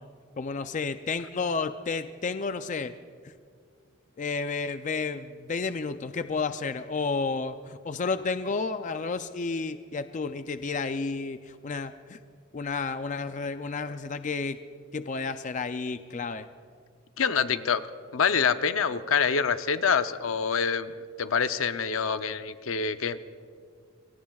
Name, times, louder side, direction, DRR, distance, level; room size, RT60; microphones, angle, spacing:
voice 1, 0.4-2.9 3.2-3.3 4.2-12.2 12.5-14.6 14.9-16.5, left 4 dB, 35° left, 10 dB, 0.4 m, -31 dB
voice 2, 17.2-17.8 18.1-20.9 21.2-23.3, left 6 dB, 75° left, 11 dB, 0.6 m, -26 dB
27.5 x 22.5 x 2.4 m, 2.1 s
head